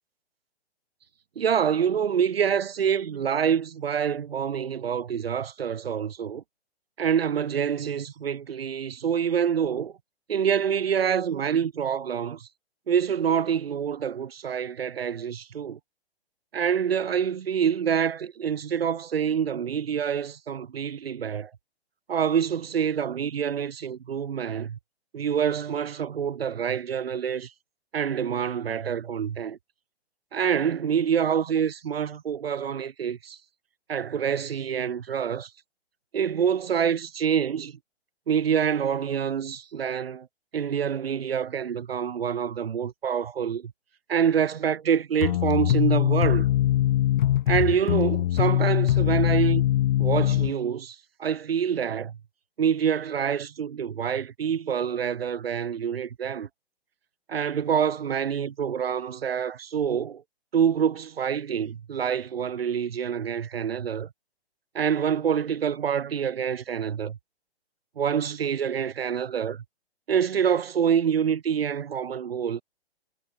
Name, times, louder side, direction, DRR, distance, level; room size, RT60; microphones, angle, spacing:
voice 1, 1.4-6.4 7.0-9.9 10.3-12.5 12.9-15.8 16.5-21.5 22.1-24.8 25.1-27.5 27.9-29.6 30.3-33.4 33.9-35.5 36.1-37.8 38.3-40.3 40.5-43.7 44.1-46.5 47.5-49.7 50.0-52.2 52.6-56.5 57.3-60.2 60.5-64.1 64.7-67.2 68.0-69.6 70.1-72.6, right 8 dB, 65° right, 2.5 m, -26 dB
sound 1, 45.2-50.5, left 13 dB, 45° left, 2.6 m, -22 dB
hypercardioid pair, 130°, 32 cm